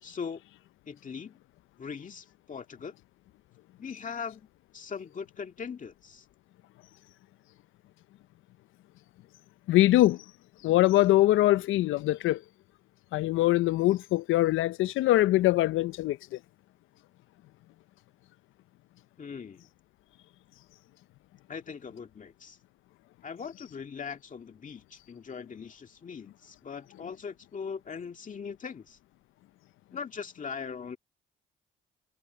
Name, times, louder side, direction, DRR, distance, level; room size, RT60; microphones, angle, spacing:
voice 1, 0.0-0.4 0.9-1.4 1.8-2.9 3.8-4.5 4.7-6.3 19.2-19.7 21.5-22.6 23.2-29.0 29.9-31.0, left 6 dB, 40° left, 2.1 m, -40 dB
voice 2, 9.7-10.2 10.6-12.4 13.1-16.4, left 16 dB, 85° left, 0.6 m, -23 dB
cardioid pair, 90°, 20 cm